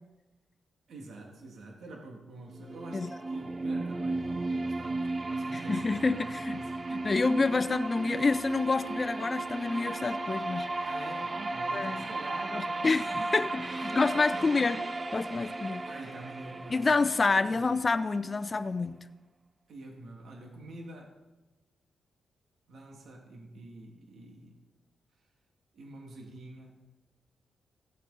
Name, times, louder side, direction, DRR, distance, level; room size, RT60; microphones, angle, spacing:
voice 1, 0.9-6.8 10.8-14.5 15.9-17.7 19.7-21.2 22.7-24.6 25.7-26.8, right 2 dB, 70° right, 0 dB, 2.2 m, -47 dB
sound 1, 2.5-18.5, right 2 dB, 30° right, 0.6 m, -35 dB
voice 2, 5.5-6.6 6.9-10.9 11.7-12.1 12.5-14.8 15.1-15.8 16.7-19.0, left 3 dB, 30° left, 9 dB, 0.6 m, -28 dB
16.0 x 8.2 x 4.1 m, 1.1 s
cardioid pair, 115°, 0 cm